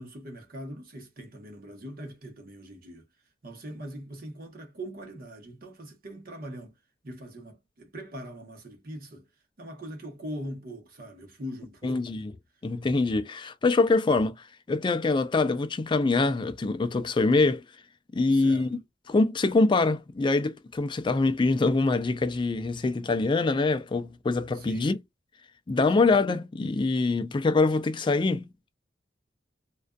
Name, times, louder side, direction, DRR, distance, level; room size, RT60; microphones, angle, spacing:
voice 1, 0.0-3.1 3.4-6.7 7.0-9.3 9.6-12.3 18.3-18.7 24.5-25.0 26.0-26.2, equal, 55° right, 0.9 m, -41 dB
voice 2, 11.8-12.2 12.6-14.4 14.7-17.6 18.1-18.7 19.1-25.0 25.7-28.5, left 3 dB, 25° left, 0.3 m, -24 dB
2.5 x 2.2 x 2.2 m
head